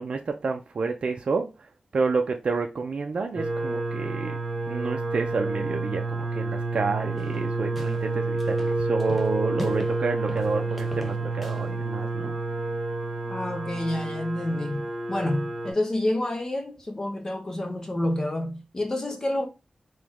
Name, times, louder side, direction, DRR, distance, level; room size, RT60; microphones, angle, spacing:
voice 1, 0.0-1.5 1.9-4.4 4.7-12.3, right 4 dB, 65° right, 0.4 m, -29 dB
sound 1, 3.4-15.7, right 3 dB, 35° right, 1.7 m, -29 dB
sound 2, 7.2-8.1 8.4-10.0 10.3-11.7, equal, ahead, 0.7 m, -39 dB
voice 2, 13.3-19.5, left 1 dB, 30° left, 0.8 m, -28 dB
3.1 x 3.0 x 3.5 m
wide cardioid pair, 135°, 2 cm